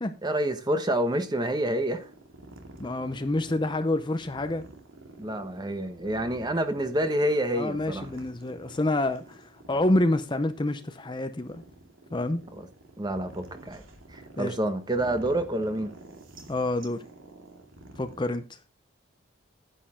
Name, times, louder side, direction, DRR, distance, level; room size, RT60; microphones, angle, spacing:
voice 1, 0.2-2.1 5.2-8.1 12.6-12.7 13.0-13.8 14.1-15.9, right 1 dB, 20° right, 1.1 m, -28 dB
sound 1, 0.7-18.4, right 2 dB, 75° right, 2.5 m, -49 dB
voice 2, 2.8-4.6 7.5-11.6 12.1-12.4 14.4-14.6 16.5-17.0 18.0-18.4, left 2 dB, 20° left, 0.6 m, -27 dB
10.0 x 10.0 x 3.7 m
head